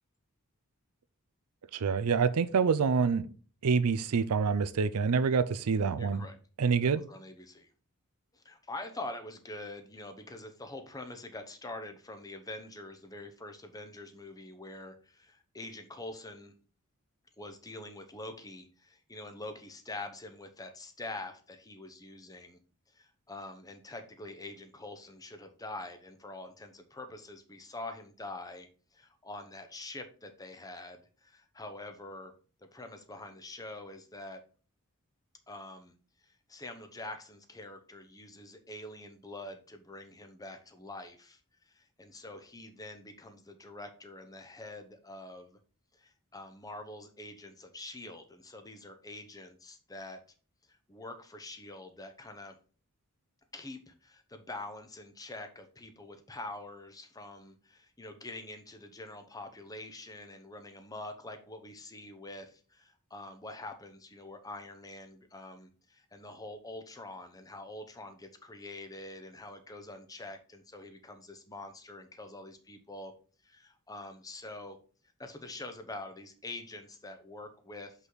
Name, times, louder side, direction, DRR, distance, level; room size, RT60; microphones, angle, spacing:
voice 1, 1.7-3.3 3.6-6.3 6.6-7.0, right 5 dB, 85° right, 0.5 m, -27 dB
voice 2, 6.0-6.4 6.8-7.7 8.3-16.5 17.4-22.6 22.9-28.7 28.9-32.3 32.7-34.4 35.5-35.9 36.2-41.4 41.7-45.6 45.9-50.2 50.7-52.6 53.5-73.1 73.4-74.8 75.2-77.9, left 2 dB, 15° left, 0.8 m, -45 dB
6.3 x 5.6 x 4.0 m
head